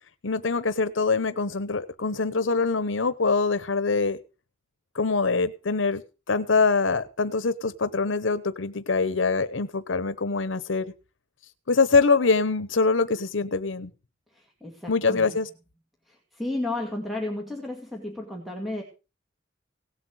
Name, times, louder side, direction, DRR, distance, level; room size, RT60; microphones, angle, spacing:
voice 1, 0.2-4.2 4.9-6.0 6.3-10.9 11.7-13.9 14.9-15.5, left 4 dB, 90° left, 0.9 m, -24 dB
voice 2, 14.3-15.4 16.1-18.8, left 2 dB, ahead, 2.3 m, -33 dB
17.5 x 7.9 x 6.3 m
head